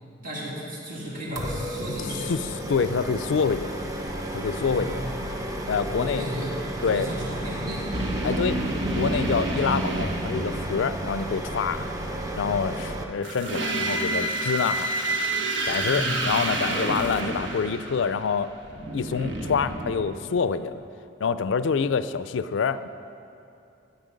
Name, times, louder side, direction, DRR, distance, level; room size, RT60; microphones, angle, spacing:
voice 1, 0.2-2.3 4.5-5.1 5.9-6.6 6.8-8.1 15.8-16.2, equal, 45° right, -5 dB, 2.5 m, -34 dB
sound 1, 1.4-13.0, right 1 dB, 15° right, 0.8 m, -33 dB
voice 2, 2.3-3.7 4.3-5.0 5.7-6.3 6.8-7.1 8.2-8.6 8.9-11.9 12.4-14.9 15.7-18.5 18.9-20.8 21.2-22.9, left 5 dB, 70° left, 14 dB, 0.4 m, -26 dB
sound 2, 7.9-11.2 13.2-20.5, right 2 dB, 70° right, 1.2 m, -29 dB
13.0 x 8.1 x 5.2 m, 2.7 s
head